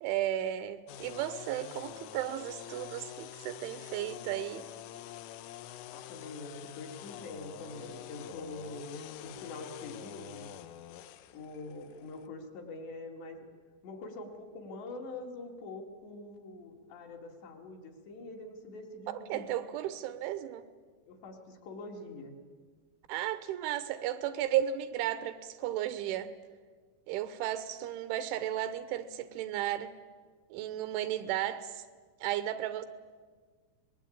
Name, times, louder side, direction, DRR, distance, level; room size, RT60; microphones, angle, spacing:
voice 1, 0.0-4.7 19.1-20.6 23.1-26.3 27.1-29.9 30.5-31.8 32.2-32.9, right 12 dB, 80° right, 12 dB, 3.2 m, -34 dB
sound 1, 0.9-12.3, left 13 dB, 90° left, 3.5 m, -47 dB
voice 2, 5.9-10.5 11.3-13.5 13.8-19.5 21.1-22.4, left 2 dB, 65° left, 1 dB, 4.4 m, -44 dB
24.5 x 20.5 x 8.7 m, 1.5 s
omnidirectional pair, 5.6 m